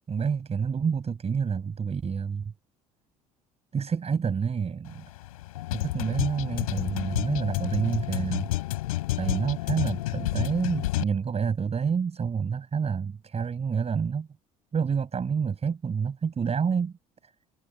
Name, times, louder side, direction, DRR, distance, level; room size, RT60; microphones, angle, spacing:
voice 1, 0.1-2.5 3.7-5.0 5.7-8.5 9.2-14.3 14.7-16.9 17.2-17.3, right 6 dB, 35° right, 5.8 m, -28 dB
sound 1, 4.9-11.0, left 17 dB, 80° left, 7.5 m, -30 dB
hypercardioid pair, 60°, 18 cm